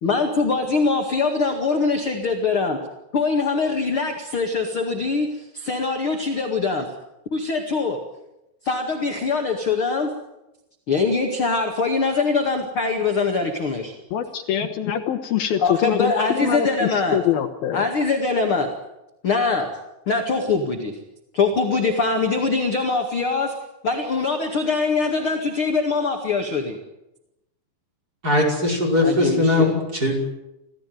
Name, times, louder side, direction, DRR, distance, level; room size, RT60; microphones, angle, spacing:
voice 1, 0.0-2.8 3.1-6.9 7.3-8.0 8.6-10.1 10.9-13.9 15.6-17.2 17.7-18.7 19.2-19.7 20.1-21.0 21.3-23.5 23.8-26.8 29.0-29.7, left 4 dB, 40° left, 3 dB, 2.2 m, -23 dB
voice 2, 14.1-17.9, left 9 dB, 70° left, 4 dB, 2.9 m, -24 dB
voice 3, 28.2-30.1, left 2 dB, 20° right, 0 dB, 5.6 m, -20 dB
28.0 x 16.0 x 9.4 m, 0.92 s
omnidirectional pair, 4.8 m